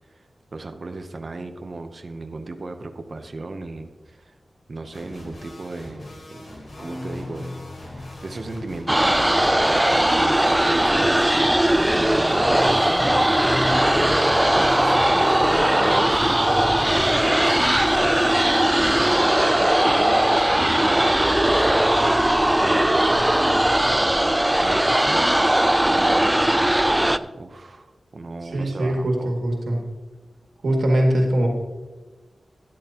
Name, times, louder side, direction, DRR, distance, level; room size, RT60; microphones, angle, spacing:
voice 1, 0.1-4.4 4.7-17.0 17.4-17.8 18.7-25.3 25.8-29.5, right 2 dB, 45° right, 6 dB, 0.8 m, -36 dB
sound 1, 4.9-19.3, left 1 dB, 60° left, 2.9 m, -43 dB
sound 2, 5.8-21.6 21.9-22.7, left 1 dB, 10° left, 0.8 m, -38 dB
sound 3, 8.9-27.2, right 1 dB, 10° right, 0.3 m, -19 dB
voice 2, 28.4-29.8 30.6-31.5, right 1 dB, 80° right, 1 dB, 2.1 m, -21 dB
12.5 x 10.5 x 2.9 m, 1.2 s
wide cardioid pair, 110°, 0 cm